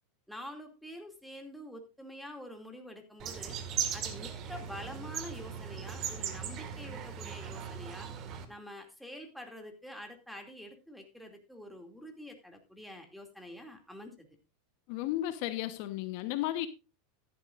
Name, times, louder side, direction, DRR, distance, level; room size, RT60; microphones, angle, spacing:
voice 1, 0.3-3.6 3.9-8.1 8.5-14.3, left 1 dB, ahead, 2.5 m, -47 dB
sound 1, 3.2-8.5, right 8 dB, 40° right, 1.9 m, -38 dB
voice 2, 14.9-16.7, left 14 dB, 60° left, 1.1 m, -33 dB
14.0 x 11.0 x 2.5 m
supercardioid pair, 120°, 0 cm